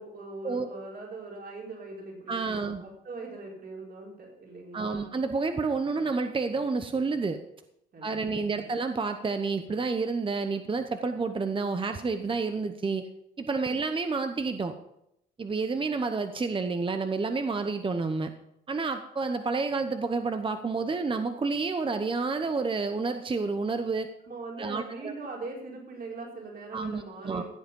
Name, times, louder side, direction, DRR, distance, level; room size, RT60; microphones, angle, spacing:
voice 1, 0.0-5.2 7.9-8.7 24.3-27.4, right 3 dB, 50° right, -2 dB, 4.6 m, -41 dB
voice 2, 2.3-2.8 4.7-7.4 8.0-13.1 13.4-14.7 15.4-18.3 18.7-24.1 24.6-25.1 26.7-27.4, right 4 dB, 25° right, 8 dB, 0.8 m, -29 dB
15.0 x 7.9 x 5.4 m, 0.81 s
cardioid pair, 90°, 20 cm